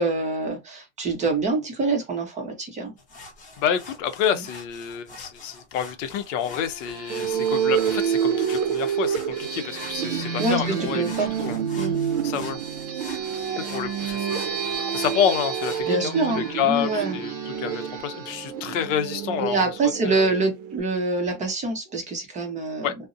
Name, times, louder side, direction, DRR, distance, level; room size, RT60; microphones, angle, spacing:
voice 1, 0.0-2.9 10.4-11.3 11.8-12.0 15.8-17.2 19.4-22.9, right 3 dB, 20° right, 0.6 m, -25 dB
sound 1, 3.0-15.8, left 3 dB, 20° left, 0.7 m, -45 dB
voice 2, 3.6-11.1 11.4-11.6 12.2-12.6 13.2-14.5 14.9-19.7 20.0-20.2 22.8-23.0, left 8 dB, 65° left, 0.6 m, -28 dB
sound 2, 6.4-19.6, right 4 dB, 40° right, 1.1 m, -37 dB
sound 3, 7.1-20.8, right 8 dB, 70° right, 0.6 m, -28 dB
2.5 x 2.0 x 2.4 m
supercardioid pair, 135°, 41 cm